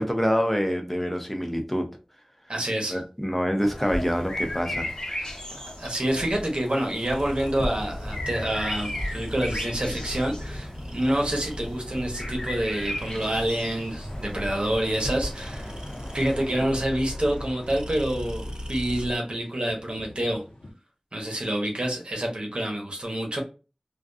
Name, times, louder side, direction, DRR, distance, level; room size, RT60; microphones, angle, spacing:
voice 1, 0.0-1.9 2.9-4.9, equal, 10° left, 4 dB, 0.6 m, -26 dB
voice 2, 2.5-3.0 5.2-5.3 5.8-15.7 16.1-20.4 21.1-23.4, right 1 dB, 60° right, 1 dB, 0.9 m, -27 dB
sound 1, 3.6-16.6, left 1 dB, 40° left, 0.8 m, -36 dB
sound 2, 7.0-19.2, equal, 40° right, 0.4 m, -38 dB
sound 3, 8.1-20.7, left 1 dB, 65° left, 0.9 m, -48 dB
2.4 x 2.2 x 2.5 m, 0.33 s
wide cardioid pair, 50°, 2 cm